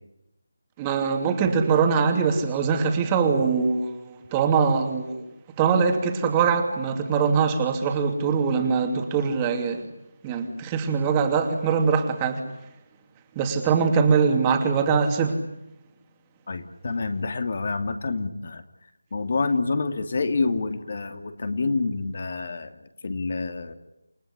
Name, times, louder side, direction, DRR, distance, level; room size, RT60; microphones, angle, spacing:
voice 1, 0.8-5.2 5.6-9.9 10.2-12.4 13.3-15.4, right 5 dB, 15° right, 5 dB, 2.8 m, -22 dB
voice 2, 16.5-18.6 19.1-22.7 23.0-23.7, left 3 dB, 50° left, 7 dB, 2.8 m, -27 dB
29.0 x 17.0 x 9.8 m, 0.85 s
figure-of-eight pair, 165°, 0 cm